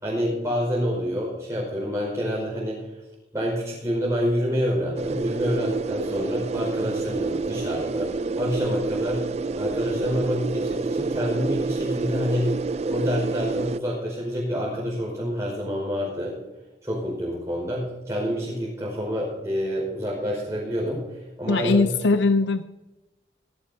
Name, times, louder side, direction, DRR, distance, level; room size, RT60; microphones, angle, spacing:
voice 1, 0.0-2.9 3.3-9.2 9.5-12.5 12.9-16.4 16.8-21.9, equal, 15° right, -5 dB, 5.0 m, -27 dB
sound 1, 5.0-13.8, right 3 dB, 35° right, 0.3 m, -28 dB
voice 2, 21.5-22.6, left 3 dB, 85° left, 10 dB, 0.6 m, -20 dB
16.5 x 16.5 x 2.8 m, 1.0 s
head